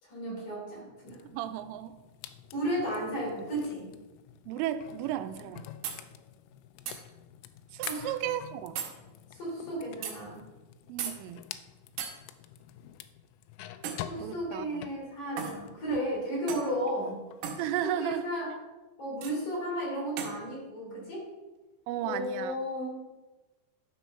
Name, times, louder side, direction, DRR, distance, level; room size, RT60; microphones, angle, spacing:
voice 1, 0.0-1.2 2.5-3.9 7.8-8.1 9.3-10.4 14.1-17.2 17.6-18.5 19.0-21.3 22.0-23.0, equal, 45° left, -5 dB, 4.2 m, -34 dB
sound 1, 1.1-16.2 16.5-18.2, left 11 dB, 85° left, 3.1 m, -48 dB
voice 2, 1.3-2.0 4.5-5.7 7.7-8.8 10.9-11.5 14.2-14.8 17.6-18.2 21.9-22.6, right 12 dB, 85° right, 10 dB, 3.1 m, -34 dB
sound 2, 5.8-6.0 6.9-7.0 7.8-8.0 8.8-8.9 10.0-10.2 11.0-11.2 12.0-12.1 13.8-14.1 15.4-15.6 16.5-16.7 17.4-17.6 19.2-19.4 20.2-20.4, right 7 dB, 70° right, 3.0 m, -35 dB
12.5 x 4.5 x 5.5 m, 1.1 s
omnidirectional pair, 5.7 m